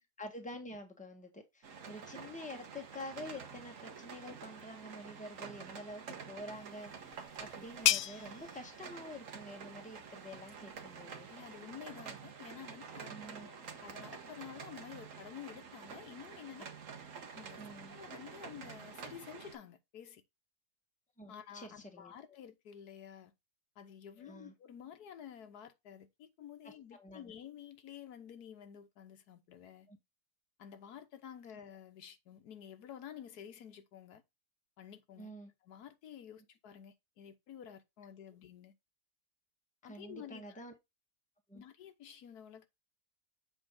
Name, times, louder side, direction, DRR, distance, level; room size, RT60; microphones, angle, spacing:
voice 1, 0.2-11.3 13.1-13.5 17.6-17.9 21.2-22.1 24.2-24.5 26.6-27.3 29.9-30.0 35.2-35.5 39.9-40.7 41.5-41.6, left 1 dB, 5° left, 1.2 m, -48 dB
sound 1, 1.6-19.6, right 6 dB, 60° right, 1.4 m, -49 dB
sound 2, 6.5-11.9, left 12 dB, 75° left, 1.0 m, -38 dB
voice 2, 11.3-16.7 17.3-20.2 21.3-23.3 23.8-29.9 30.6-34.2 34.8-35.3 35.6-38.7 39.8-40.6 41.5-42.7, left 9 dB, 90° left, 1.5 m, -51 dB
7.5 x 4.8 x 3.7 m
omnidirectional pair, 1.6 m